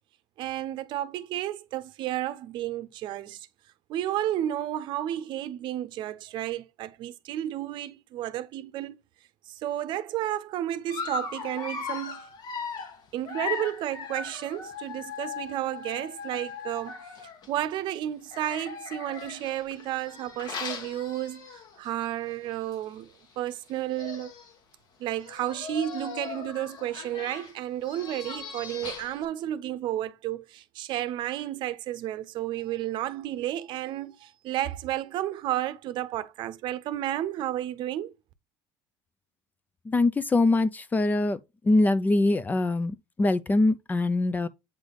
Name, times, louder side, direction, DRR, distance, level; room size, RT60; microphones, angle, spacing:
voice 1, 0.4-3.4 3.9-8.9 9.6-12.2 13.1-17.0 17.5-21.5 21.8-23.1 23.4-24.3 25.0-38.1, right 13 dB, 60° right, 0.7 m, -32 dB
Dog, 10.9-17.5 18.3-21.9 22.3-22.5 22.7-22.8 23.7-23.8 24.0-24.5 25.2-29.3, left 5 dB, 50° left, 1.4 m, -38 dB
voice 2, 39.9-41.4 41.7-44.5, left 2 dB, 20° left, 0.5 m, -23 dB
8.1 x 3.4 x 3.9 m
supercardioid pair, 110°, 9 cm